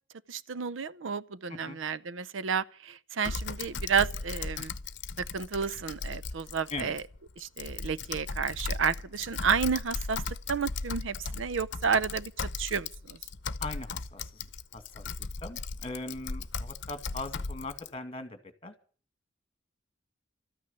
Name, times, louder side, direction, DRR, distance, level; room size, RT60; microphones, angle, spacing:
voice 1, 0.3-2.6 3.2-4.7 5.2-7.0 7.6-10.2 10.5-12.3 12.6-12.9, right 6 dB, 80° right, 0.6 m, -30 dB
Typing, 3.2-17.9, left 4 dB, 65° left, 0.9 m, -37 dB
voice 2, 13.6-14.5 14.7-15.1 15.4-18.7, left 2 dB, 30° left, 2.2 m, -40 dB
13.5 x 9.5 x 9.8 m
head